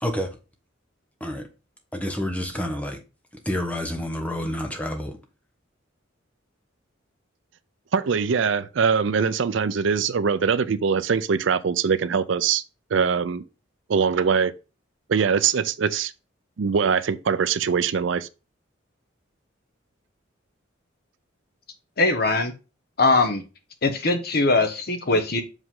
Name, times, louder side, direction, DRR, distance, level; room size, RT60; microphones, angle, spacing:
voice 1, 0.0-0.4 1.2-1.5 1.9-3.0 3.4-5.2, left 1 dB, 5° left, 1.0 m, -29 dB
voice 2, 7.9-12.6 12.9-13.4 13.9-14.5 15.1-16.1 16.6-18.3, right 6 dB, 70° right, 0.5 m, -22 dB
voice 3, 22.0-22.5 23.0-23.4 23.8-25.4, left 3 dB, 50° left, 1.1 m, -21 dB
6.3 x 5.0 x 3.8 m
head